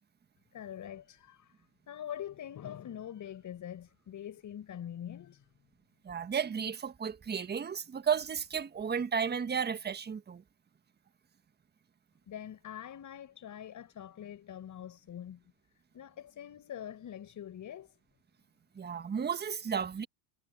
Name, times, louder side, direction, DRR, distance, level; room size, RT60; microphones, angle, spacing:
voice 1, 0.5-1.5 1.9-5.5 12.3-15.4 15.9-17.9, left 10 dB, 40° left, 5.8 m, -44 dB
voice 2, 6.0-10.4 18.7-20.1, right 7 dB, 20° right, 1.6 m, -33 dB
hypercardioid pair, 85°, 49 cm